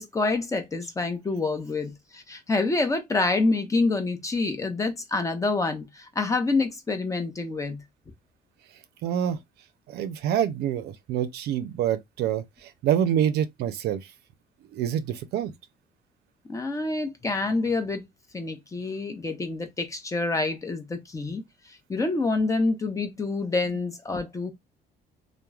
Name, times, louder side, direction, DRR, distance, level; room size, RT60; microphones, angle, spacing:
voice 1, 0.0-7.8 16.5-18.1 18.3-24.5, left 3 dB, 20° left, 0.6 m, -27 dB
voice 2, 9.0-9.4 9.9-14.1 14.7-15.5, right 10 dB, 75° right, 0.4 m, -26 dB
3.0 x 2.0 x 2.3 m
cardioid pair, 110°, 17 cm